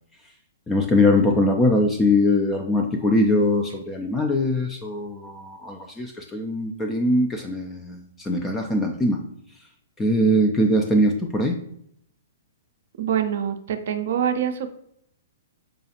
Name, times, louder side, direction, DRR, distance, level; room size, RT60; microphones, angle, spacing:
voice 1, 0.7-9.2 10.0-11.6, left 1 dB, 15° left, 3 dB, 0.3 m, -21 dB
voice 2, 13.0-14.7, right 8 dB, 60° right, 7 dB, 0.4 m, -25 dB
4.8 x 2.3 x 2.8 m, 0.71 s
figure-of-eight pair, 120°, 0 cm